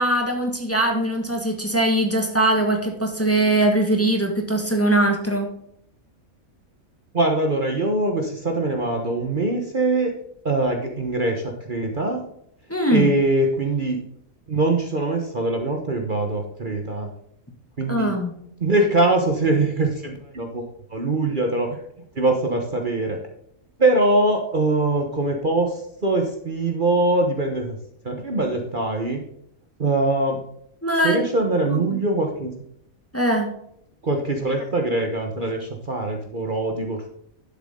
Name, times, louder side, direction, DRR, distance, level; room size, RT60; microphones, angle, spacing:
voice 1, 0.0-5.5 12.7-13.1 17.9-18.3 30.8-31.2 31.6-32.0 33.1-33.5, right 1 dB, 10° left, 2 dB, 1.6 m, -21 dB
voice 2, 7.1-10.1 10.4-12.2 12.9-14.0 14.5-17.1 17.8-18.1 18.6-20.7 20.9-21.7 22.1-23.2 23.8-27.8 28.0-29.2 29.8-30.4 31.0-32.5 34.0-37.1, right 2 dB, 40° right, 3 dB, 1.3 m, -22 dB
11.5 x 7.3 x 3.7 m, 0.71 s
omnidirectional pair, 1.4 m